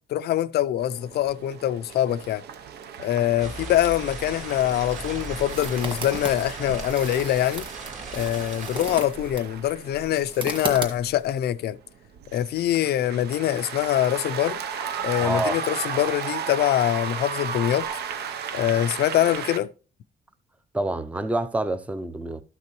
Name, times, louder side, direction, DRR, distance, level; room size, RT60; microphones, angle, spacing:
voice 1, 0.1-2.4 3.0-7.7 8.1-11.8 12.3-14.6 15.0-17.9 18.5-19.7, left 12 dB, 70° left, 0.5 m, -24 dB
sound 1, 0.8-19.6, right 7 dB, 70° right, 0.8 m, -35 dB
sound 2, 3.4-9.0, right 2 dB, 45° right, 2.1 m, -38 dB
sound 3, 4.2-11.4, right 3 dB, 25° right, 2.0 m, -37 dB
voice 2, 15.2-15.6 20.7-22.4, right 1 dB, 10° right, 0.5 m, -27 dB
13.0 x 5.9 x 3.0 m
cardioid pair, 125°, 17 cm